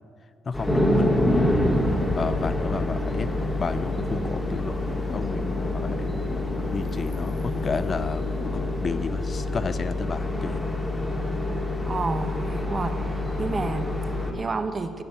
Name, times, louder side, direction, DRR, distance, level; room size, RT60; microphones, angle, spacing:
voice 1, 0.4-1.4 2.2-3.3 3.6-6.1 6.7-8.2 8.8-10.6, left 5 dB, 40° left, 13 dB, 0.7 m, -32 dB
sound 1, 0.5-14.3, left 1 dB, 20° left, 2.5 m, -26 dB
Traffic noise roadway noise / Engine, 1.5-8.7, left 3 dB, 60° left, 1.8 m, -38 dB
voice 2, 11.9-15.0, right 3 dB, 35° right, 8 dB, 1.2 m, -31 dB
16.5 x 7.0 x 7.6 m, 2.4 s
cardioid pair, 80°, 0 cm